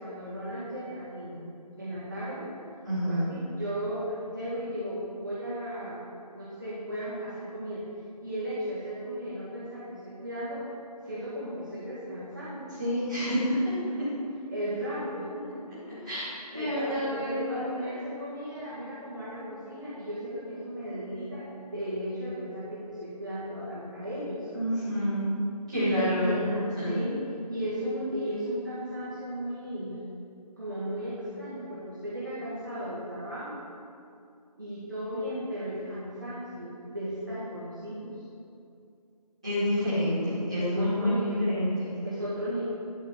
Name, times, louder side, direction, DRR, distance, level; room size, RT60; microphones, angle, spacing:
voice 1, 0.0-1.5 1.8-2.5 3.0-7.8 8.2-10.6 11.0-12.7 13.8-14.1 14.5-15.5 15.9-16.1 16.5-24.5 25.7-26.5 26.8-27.2 27.5-30.1 30.6-33.6 34.6-38.2 40.6-41.4 42.0-42.6, equal, 30° right, -12 dB, 2.0 m, -35 dB
voice 2, 2.8-3.3 12.8-13.5 13.9-14.0 15.9-17.9 24.5-25.4 25.7-26.5 26.8-26.9 39.4-41.9, equal, 10° right, -19 dB, 2.6 m, -28 dB
12.0 x 4.7 x 7.3 m, 2.5 s
figure-of-eight pair, 180°, 21 cm